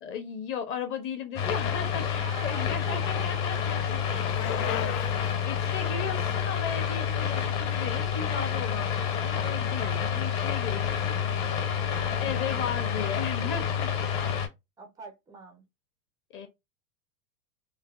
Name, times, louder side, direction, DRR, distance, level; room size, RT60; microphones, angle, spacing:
voice 1, 0.0-5.0 5.4-11.2 12.2-14.3 16.3-16.5, left 6 dB, 30° left, 0.7 m, -36 dB
sound 1, 1.4-14.5, left 7 dB, 45° left, 1.1 m, -29 dB
Bicycle, 2.1-8.1, left 10 dB, 80° left, 0.6 m, -39 dB
voice 2, 2.2-3.6 4.1-4.2 4.5-5.2 5.9-6.3 14.8-15.6, right 3 dB, 10° right, 0.3 m, -43 dB
3.3 x 2.1 x 2.3 m
supercardioid pair, 135°, 45 cm